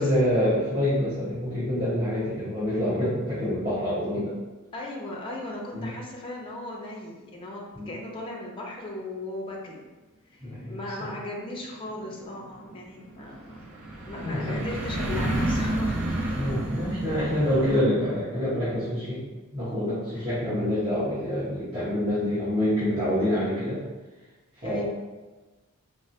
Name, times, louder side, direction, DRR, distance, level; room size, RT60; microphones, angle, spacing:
voice 1, 0.0-4.3 5.7-5.9 7.7-7.9 10.4-10.8 14.2-14.6 16.3-19.2 19.5-23.8 24.6-24.8, left 1 dB, 35° right, -14 dB, 1.2 m, -26 dB
voice 2, 4.7-9.9 10.3-13.6 14.0-16.4 20.1-20.3 24.6-24.8, left 1 dB, 25° left, -2 dB, 0.4 m, -37 dB
sound 1, 11.4-17.8, right 1 dB, 85° right, 0.6 m, -30 dB
4.1 x 2.0 x 2.7 m, 1.2 s
head